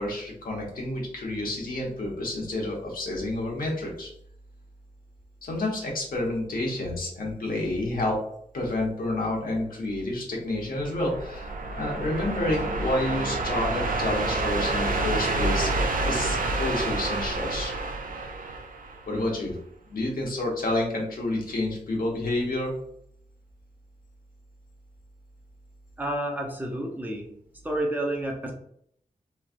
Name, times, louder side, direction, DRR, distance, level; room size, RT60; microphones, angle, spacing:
voice 1, 0.0-4.1 5.4-8.2 8.5-15.7 16.0-17.7 19.1-19.6 19.9-22.7, left 1 dB, 85° left, -2 dB, 0.9 m, -29 dB
sound 1, 10.8-19.3, right 2 dB, 75° right, 0.4 m, -28 dB
voice 2, 26.0-27.3 27.6-28.5, right 1 dB, 10° right, 0 dB, 0.6 m, -30 dB
3.1 x 2.4 x 2.4 m, 0.68 s
wide cardioid pair, 115°, 14 cm